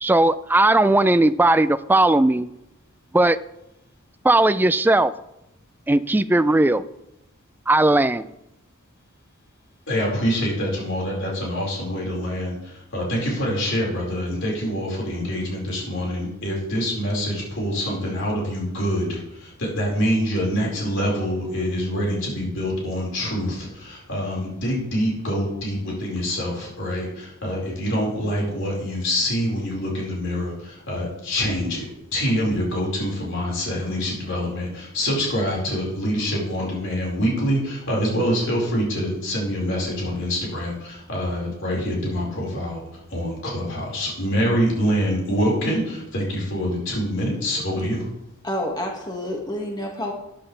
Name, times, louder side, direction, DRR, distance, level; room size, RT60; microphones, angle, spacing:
voice 1, 0.0-2.5 3.1-3.4 4.2-5.1 5.9-6.8 7.7-8.3, right 2 dB, 10° right, 13 dB, 0.3 m, -17 dB
voice 2, 9.9-42.8 43.1-48.1, equal, 60° left, -3 dB, 4.8 m, -25 dB
voice 3, 48.4-50.1, left 1 dB, 20° left, 0 dB, 1.7 m, -28 dB
13.5 x 10.0 x 3.3 m, 0.86 s
head